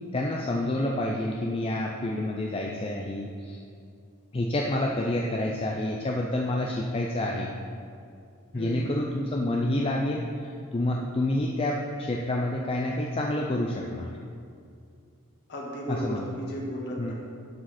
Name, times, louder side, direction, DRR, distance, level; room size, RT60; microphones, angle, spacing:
voice 1, 0.1-3.6 4.3-7.5 8.5-14.1 15.9-16.3 17.0-17.1, left 1 dB, 25° left, 0 dB, 0.4 m, -28 dB
voice 2, 8.5-8.9 15.5-17.1, equal, 50° left, -3 dB, 1.7 m, -34 dB
12.0 x 5.0 x 4.2 m, 2.4 s
head